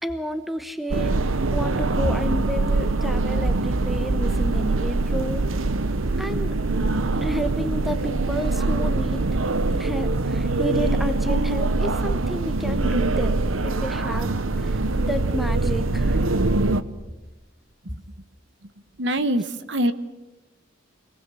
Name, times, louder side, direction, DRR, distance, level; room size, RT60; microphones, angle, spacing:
voice 1, 0.0-1.1 1.5-5.4 6.2-6.6 7.2-9.2 9.7-16.2, equal, ahead, 9 dB, 1.0 m, -31 dB
sound 1, 0.9-16.8, right 2 dB, 75° right, 0.9 m, -23 dB
voice 2, 19.0-19.9, right 1 dB, 55° right, 12 dB, 1.1 m, -25 dB
26.0 x 19.0 x 7.6 m, 1.1 s
head